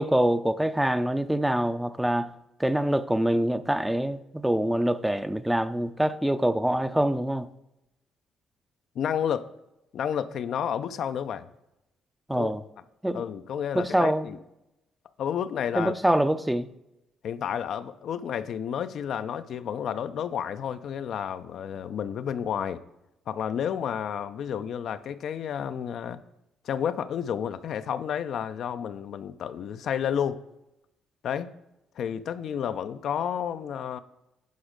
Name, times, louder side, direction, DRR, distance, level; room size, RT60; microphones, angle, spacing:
voice 1, 0.0-2.3 2.6-7.5 12.3-12.6 13.0-13.2 13.7-14.3 15.8-16.7, right 1 dB, 5° right, 0.5 m, -25 dB
voice 2, 9.0-9.5 9.9-11.5 12.3-12.5 13.1-14.4 15.2-15.9 17.2-22.8 23.3-26.2 26.6-30.4 31.2-31.5 32.0-34.0, left 8 dB, 65° left, 0.5 m, -31 dB
10.5 x 5.0 x 5.1 m
cardioid pair, 80°, 0 cm